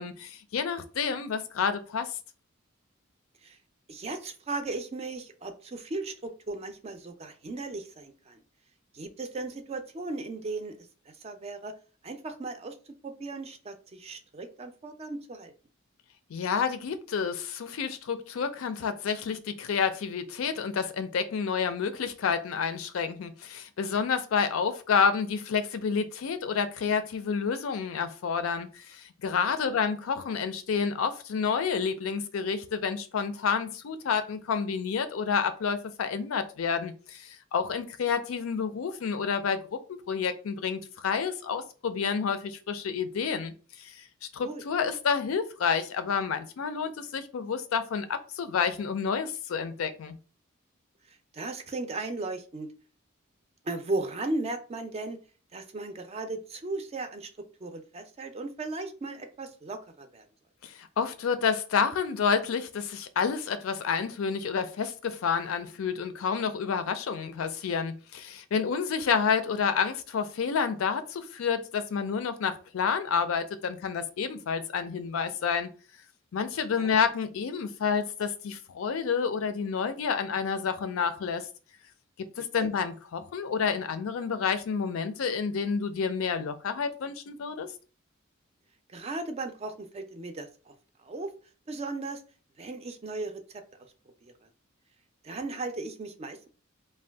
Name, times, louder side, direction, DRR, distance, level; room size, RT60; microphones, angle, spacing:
voice 1, 0.0-2.1 16.3-50.2 60.6-75.7 76.3-81.5 82.2-87.7, left 6 dB, 85° left, 0.4 m, -29 dB
voice 2, 3.9-8.4 8.9-10.8 11.2-11.7 12.0-12.8 13.0-15.5 29.6-29.7 44.4-44.6 51.3-52.7 53.6-55.2 55.5-57.3 57.6-60.3 76.8-77.0 82.6-82.7 88.9-90.7 91.0-91.3 91.7-92.2 92.6-93.6 94.2-94.3 95.2-96.5, right 2 dB, 30° right, 0.4 m, -36 dB
2.6 x 2.2 x 3.3 m
head